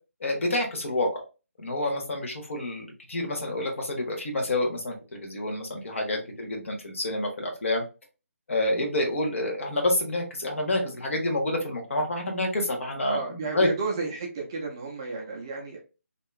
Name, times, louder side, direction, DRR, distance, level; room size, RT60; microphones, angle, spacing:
voice 1, 0.2-1.2 1.6-7.8 8.5-13.2 13.5-13.7, left 1 dB, 60° left, 1 dB, 1.1 m, -28 dB
voice 2, 6.2-6.7 13.0-15.8, right 3 dB, 15° right, -1 dB, 0.4 m, -33 dB
2.8 x 2.3 x 2.3 m, 0.31 s
hypercardioid pair, 170°, 8 cm